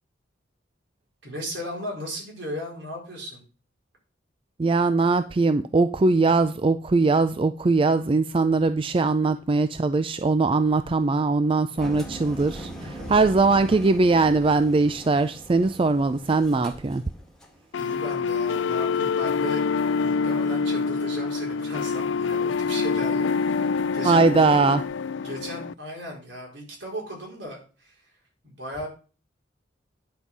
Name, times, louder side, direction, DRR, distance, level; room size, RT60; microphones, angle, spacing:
voice 1, 1.2-3.4 12.9-13.3 17.8-19.6 20.0-24.7 25.2-27.9 28.4-28.9, equal, 70° right, -1 dB, 4.7 m, -36 dB
voice 2, 4.6-17.0 24.0-24.8, right 3 dB, 30° right, 11 dB, 0.4 m, -21 dB
Engine, 11.8-17.6, right 1 dB, 5° left, 1.8 m, -40 dB
sound 1, 17.7-25.7, left 5 dB, 75° left, 0.4 m, -26 dB
10.0 x 5.4 x 6.1 m, 0.37 s
head